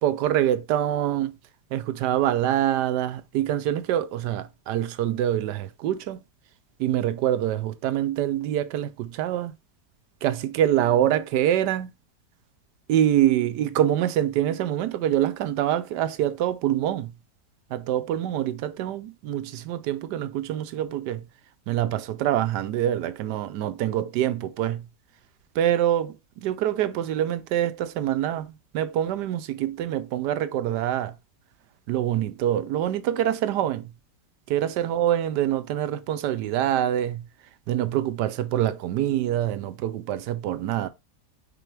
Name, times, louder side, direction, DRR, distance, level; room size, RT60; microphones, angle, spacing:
voice 1, 0.0-1.3 1.7-6.2 6.8-9.5 10.2-11.9 12.9-17.1 17.7-21.2 21.7-24.8 25.5-26.2 26.4-31.1 31.9-33.9 34.5-37.2 37.7-40.9, right 11 dB, 85° right, 1.2 m, -25 dB
5.3 x 4.1 x 4.5 m
omnidirectional pair, 1.8 m